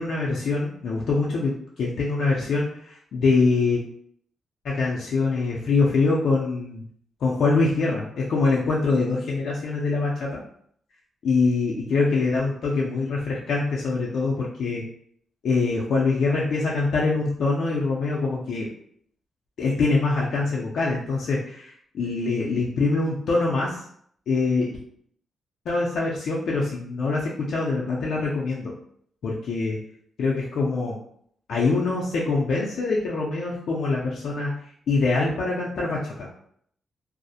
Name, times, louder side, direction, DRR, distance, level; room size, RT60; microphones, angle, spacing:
voice 1, 0.0-3.8 4.6-6.8 7.2-10.4 11.2-14.8 15.4-18.7 19.6-23.8 24.3-24.8 25.7-28.7 29.2-29.8 30.2-31.0 31.5-36.3, left 3 dB, 75° left, -4 dB, 0.4 m, -24 dB
2.4 x 2.0 x 2.6 m, 0.65 s
cardioid pair, 110°, 0 cm